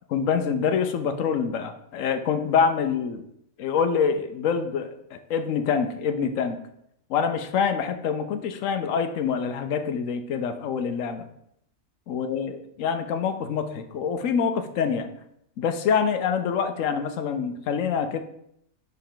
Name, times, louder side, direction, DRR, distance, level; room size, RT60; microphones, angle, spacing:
voice 1, 0.1-3.2 3.6-6.6 7.1-11.3 12.1-15.1 15.6-18.2, left 6 dB, 85° left, 9 dB, 1.1 m, -26 dB
6.7 x 4.0 x 3.8 m, 0.74 s
omnidirectional pair, 1.3 m